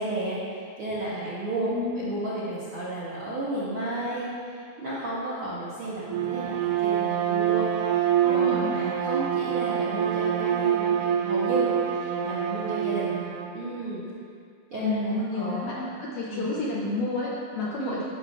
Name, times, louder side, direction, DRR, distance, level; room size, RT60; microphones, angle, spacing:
voice 1, 0.0-13.2 13.5-14.0 14.7-15.8 16.3-16.5 17.8-18.0, right 1 dB, 65° right, -9 dB, 1.3 m, -32 dB
voice 2, 1.7-2.1 8.2-8.8 14.7-18.0, left 2 dB, 75° left, -5 dB, 1.6 m, -30 dB
Bowed string instrument, 6.0-13.6, right 10 dB, 85° right, 2.2 m, -26 dB
11.5 x 5.9 x 2.5 m, 2.3 s
omnidirectional pair, 3.8 m